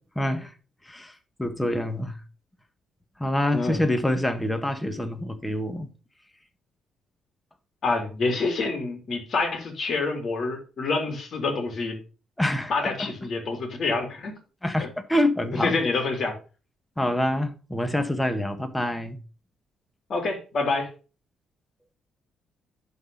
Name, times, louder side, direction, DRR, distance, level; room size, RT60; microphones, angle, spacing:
voice 1, 0.2-0.5 0.8-2.2 3.2-5.9 12.4-13.1 14.6-15.8 17.0-19.2, left 1 dB, 10° left, 1.5 m, -26 dB
voice 2, 7.8-12.0 12.7-14.4 14.8-14.9 15.6-16.4 20.1-20.9, left 3 dB, 55° left, 3.2 m, -27 dB
11.0 x 4.2 x 5.5 m
cardioid pair, 90°, 0 cm